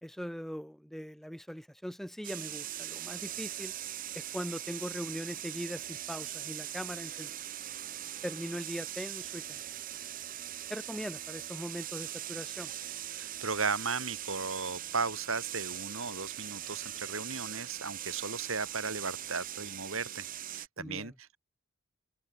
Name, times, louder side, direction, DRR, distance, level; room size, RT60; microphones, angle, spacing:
voice 1, 0.0-3.7 4.2-7.3 8.2-9.6 10.7-12.7 20.8-21.1, equal, ahead, 2.2 m, -40 dB
sound 1, 2.2-20.7, right 12 dB, 40° right, 0.7 m, -41 dB
voice 2, 13.1-21.4, right 4 dB, 65° right, 3.3 m, -36 dB
open air
head